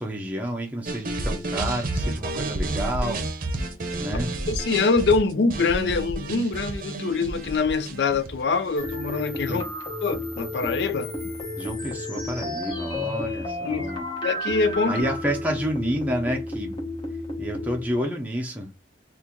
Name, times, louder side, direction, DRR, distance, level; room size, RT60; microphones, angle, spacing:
voice 1, 0.0-3.2 4.0-4.3 9.5-9.7 11.6-14.1 14.9-16.9 17.4-18.7, equal, 10° right, 0.5 m, -29 dB
sound 1, 0.9-8.9, right 2 dB, 50° right, 0.6 m, -30 dB
voice 2, 4.5-9.7 10.0-11.1 13.6-13.9 14.2-15.0, left 4 dB, 75° left, 0.5 m, -24 dB
sound 2, 8.8-18.1, left 1 dB, 25° left, 1.0 m, -32 dB
2.9 x 2.5 x 3.7 m
head